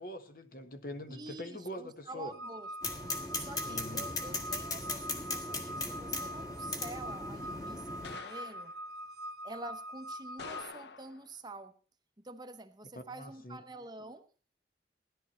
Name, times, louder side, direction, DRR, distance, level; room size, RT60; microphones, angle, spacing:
voice 1, 0.0-2.3 3.7-4.1 13.1-13.6, left 1 dB, 50° left, 8 dB, 1.4 m, -43 dB
voice 2, 1.1-2.7 3.3-8.7 9.4-11.7 12.2-14.3, right 2 dB, 25° right, 9 dB, 0.9 m, -47 dB
sound 1, 2.3-10.6, equal, 65° right, 0.9 m, -43 dB
sound 2, 2.8-8.2, left 2 dB, 20° left, 1.6 m, -38 dB
sound 3, 4.8-5.2 5.6-5.8 8.0-8.8 10.4-11.3, left 5 dB, 70° left, 0.7 m, -47 dB
16.5 x 11.5 x 4.3 m, 0.39 s
head